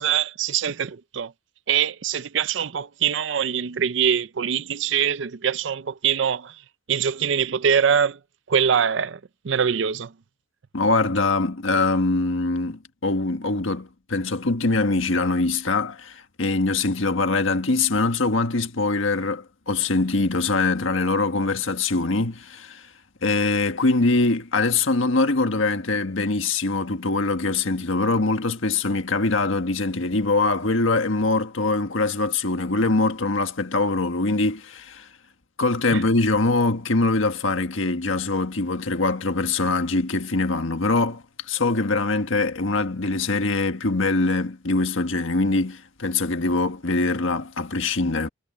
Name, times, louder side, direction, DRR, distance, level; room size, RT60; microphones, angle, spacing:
voice 1, 0.0-1.3 1.7-6.6 6.9-8.2 8.5-9.2 9.4-10.1 35.9-36.0, right 7 dB, 70° right, 0.5 m, -23 dB
voice 2, 10.7-22.9 23.2-35.1 35.6-48.3, left 3 dB, 85° left, 1.5 m, -23 dB
head